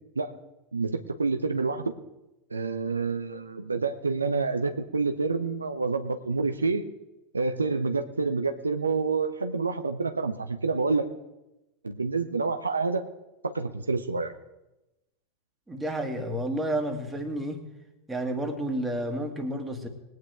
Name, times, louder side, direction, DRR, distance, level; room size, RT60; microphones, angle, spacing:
voice 1, 0.7-1.9 2.5-6.8 7.3-11.1 11.8-13.0 13.4-14.3, right 4 dB, 80° right, 8 dB, 0.7 m, -28 dB
voice 2, 15.7-17.6 18.1-19.9, right 1 dB, 10° right, 4 dB, 2.1 m, -30 dB
20.5 x 9.3 x 3.6 m, 0.96 s
figure-of-eight pair, 85°, 0 cm